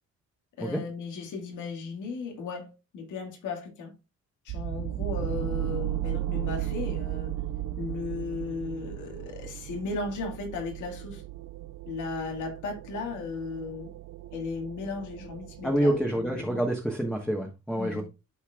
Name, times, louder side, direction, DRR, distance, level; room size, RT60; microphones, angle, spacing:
voice 1, 0.6-3.9 4.5-7.3 7.8-11.2 11.9-13.9 14.3-16.7 17.7-18.0, left 4 dB, 80° left, 2.1 m, -36 dB
sound 1, 4.5-16.4, right 14 dB, 65° right, 0.5 m, -35 dB
voice 2, 15.6-18.0, right 1 dB, 5° left, 1.3 m, -27 dB
12.0 x 4.4 x 2.4 m
cardioid pair, 90°, 30 cm